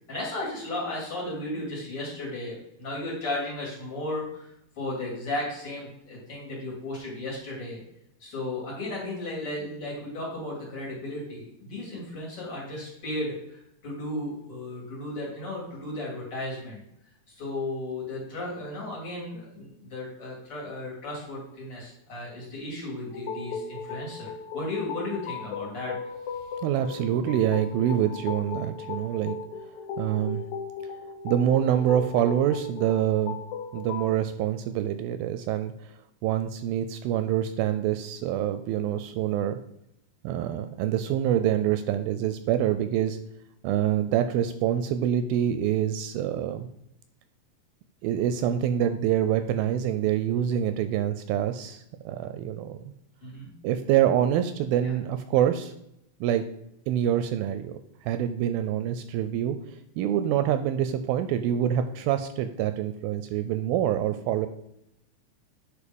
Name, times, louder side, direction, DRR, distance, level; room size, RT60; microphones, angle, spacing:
voice 1, 0.1-7.8 8.2-16.8 17.3-25.9 53.2-53.5 54.8-54.9, left 1 dB, 40° left, -4 dB, 3.2 m, -35 dB
sound 1, 23.1-34.1, left 5 dB, 65° left, 2.1 m, -37 dB
voice 2, 26.6-29.4 30.0-30.4 31.2-33.4 33.7-35.7 36.2-39.6 40.2-43.2 43.6-46.7 48.0-52.8 53.6-55.7 56.2-56.4 56.9-57.8 58.0-59.6 60.0-64.5, right 10 dB, 80° right, 10 dB, 2.3 m, -26 dB
9.7 x 4.5 x 5.2 m, 0.78 s
omnidirectional pair, 4.4 m